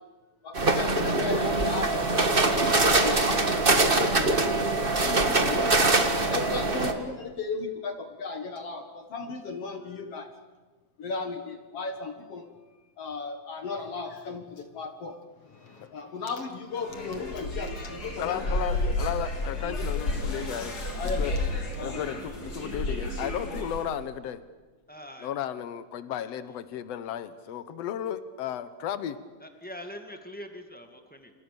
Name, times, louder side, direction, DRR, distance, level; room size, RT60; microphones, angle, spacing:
voice 1, 0.4-5.6 6.3-10.3 11.0-12.5 13.0-15.2 15.8-18.9 20.2-20.3 20.9-21.4 21.8-22.1, left 4 dB, 50° left, 7 dB, 2.1 m, -36 dB
sound 1, 0.5-6.9, right 2 dB, 85° right, 0.5 m, -23 dB
sound 2, 16.8-23.9, left 1 dB, 25° left, 3.0 m, -31 dB
voice 2, 18.2-20.8 21.2-21.3 21.8-24.4 25.2-29.2, left 10 dB, 80° left, 13 dB, 1.4 m, -34 dB
voice 3, 24.9-25.3 29.4-31.3, equal, 5° left, 5 dB, 0.6 m, -43 dB
28.5 x 28.0 x 6.9 m, 1.3 s
omnidirectional pair, 4.5 m